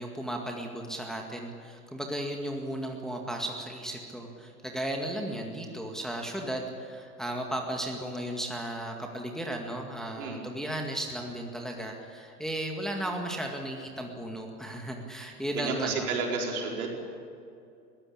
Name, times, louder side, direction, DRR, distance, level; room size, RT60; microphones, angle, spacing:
voice 1, 0.0-16.1, right 1 dB, ahead, 1 dB, 2.0 m, -35 dB
voice 2, 15.5-16.9, right 4 dB, 65° right, 0 dB, 4.8 m, -31 dB
21.0 x 16.0 x 8.6 m, 2.5 s
figure-of-eight pair, 95°, 47 cm